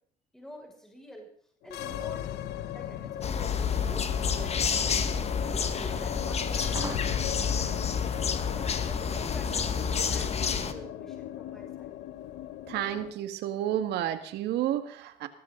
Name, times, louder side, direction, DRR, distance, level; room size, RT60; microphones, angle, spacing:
voice 1, 0.3-1.3 1.6-4.1 4.4-7.9 8.4-12.0, equal, 5° left, 0 dB, 6.0 m, -48 dB
sound 1, 1.6-13.1, left 12 dB, 80° left, 1.0 m, -38 dB
sound 2, 2.8-7.8, right 4 dB, 20° right, 1.7 m, -45 dB
sound 3, 3.2-10.7, left 6 dB, 40° left, 1.7 m, -29 dB
voice 2, 12.7-15.3, right 11 dB, 80° right, 9 dB, 1.9 m, -31 dB
20.5 x 14.0 x 3.9 m, 0.63 s
cardioid pair, 110°, 17 cm